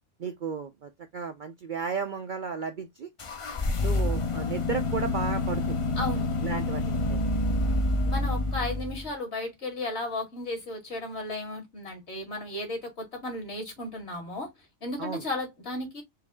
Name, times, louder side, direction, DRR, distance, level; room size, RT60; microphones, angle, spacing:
voice 1, 0.2-3.1 3.8-5.8 6.4-7.3 15.0-15.2, right 6 dB, 55° right, 0.5 m, -34 dB
sound 1, 3.2-9.1, left 2 dB, 35° left, 0.5 m, -28 dB
voice 2, 6.0-6.3 8.0-14.5 14.8-16.0, left 2 dB, 60° left, 2.3 m, -34 dB
4.8 x 2.6 x 3.4 m
omnidirectional pair, 1.3 m